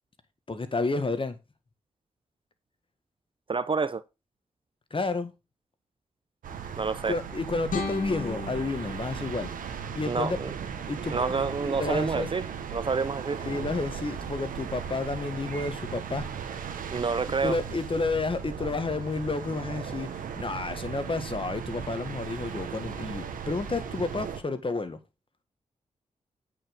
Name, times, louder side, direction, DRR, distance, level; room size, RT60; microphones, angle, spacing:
voice 1, 0.5-1.4 4.9-5.3 7.1-9.5 10.0-10.4 10.9-11.3 11.6-12.3 13.3-16.3 17.4-25.0, left 3 dB, 40° left, 1.6 m, -31 dB
voice 2, 3.5-4.0 6.8-7.2 10.0-10.5 11.1-12.4 12.7-13.4 16.9-17.6, right 4 dB, 40° right, 0.6 m, -28 dB
sound 1, 6.4-24.4, right 7 dB, 85° right, 1.4 m, -37 dB
sound 2, 7.7-10.7, left 4 dB, 75° left, 1.9 m, -37 dB
8.7 x 5.3 x 5.2 m
supercardioid pair, 45°, 14 cm